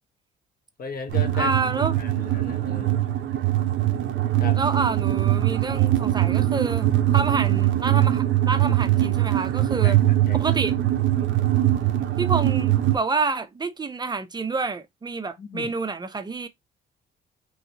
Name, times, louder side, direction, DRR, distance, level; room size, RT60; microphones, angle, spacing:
voice 1, 0.8-1.5 2.0-3.0 4.4-4.6 9.8-10.4 15.4-15.7, left 5 dB, 50° left, 0.9 m, -36 dB
sound 1, 1.1-13.0, right 13 dB, 75° right, 0.6 m, -22 dB
voice 2, 1.3-2.0 4.6-10.0 10.4-10.8 12.2-16.5, right 4 dB, 20° right, 0.5 m, -28 dB
3.0 x 2.7 x 2.7 m
cardioid pair, 90°, 20 cm